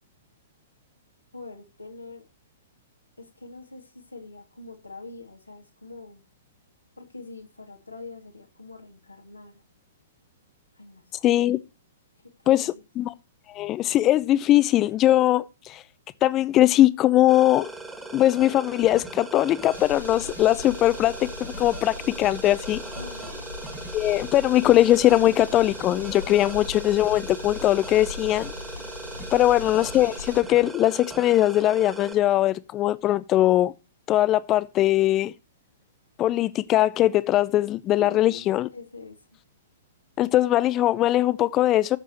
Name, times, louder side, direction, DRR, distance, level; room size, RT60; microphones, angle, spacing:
voice 1, 1.3-2.2 3.2-6.2 7.0-9.6 10.7-11.4 12.2-12.8 23.0-23.3 38.0-39.2, left 3 dB, 80° left, 2.7 m, -44 dB
voice 2, 11.2-11.6 12.5-12.7 13.0-13.1 13.5-15.8 16.2-17.7 18.1-22.8 23.9-28.5 29.3-33.7 34.1-35.3 36.2-38.7 40.2-42.0, left 14 dB, 25° left, 0.6 m, -21 dB
sound 1, 17.3-32.1, right 3 dB, 5° right, 2.3 m, -39 dB
sound 2, 19.7-30.4, left 2 dB, 90° right, 1.9 m, -39 dB
14.5 x 7.6 x 3.1 m
figure-of-eight pair, 110°, 0 cm